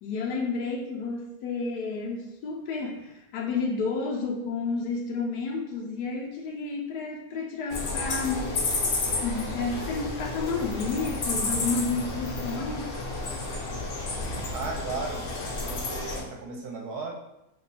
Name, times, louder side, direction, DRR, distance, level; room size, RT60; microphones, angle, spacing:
voice 1, 0.0-8.7 9.2-12.9, left 4 dB, 80° left, 0 dB, 1.2 m, -31 dB
sound 1, 7.7-16.2, left 3 dB, 60° left, 0.8 m, -31 dB
voice 2, 14.5-15.2 15.6-17.1, right 4 dB, 70° right, 0 dB, 1.1 m, -35 dB
3.1 x 2.2 x 4.0 m, 0.87 s
omnidirectional pair, 1.8 m